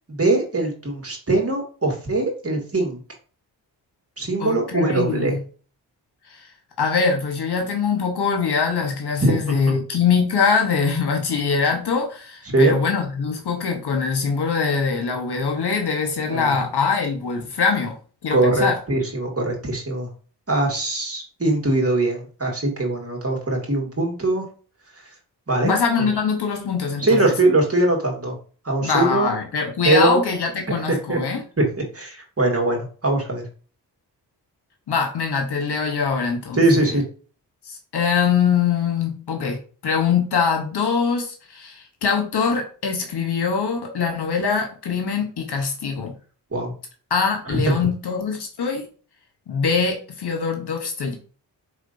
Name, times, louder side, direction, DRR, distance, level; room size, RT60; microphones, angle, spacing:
voice 1, 0.1-3.0 4.2-5.4 9.2-9.6 12.5-12.8 16.3-16.6 18.3-20.1 20.5-24.4 25.5-25.7 26.0-26.1 27.0-28.4 28.6-29.3 29.8-30.2 30.9-31.2 31.6-31.7 31.9-33.4 36.5-37.1 46.5-46.7 47.5-47.8, right 2 dB, 30° right, 0 dB, 2.1 m, -21 dB
voice 2, 4.4-5.4 6.3-6.5 6.8-17.9 18.2-18.8 25.6-27.0 28.8-31.4 34.9-36.6 36.9-37.0 37.7-46.1 47.1-48.9 49.5-51.2, left 5 dB, 65° left, 3 dB, 1.1 m, -23 dB
5.0 x 3.5 x 2.6 m, 0.39 s
cardioid pair, 45°, 43 cm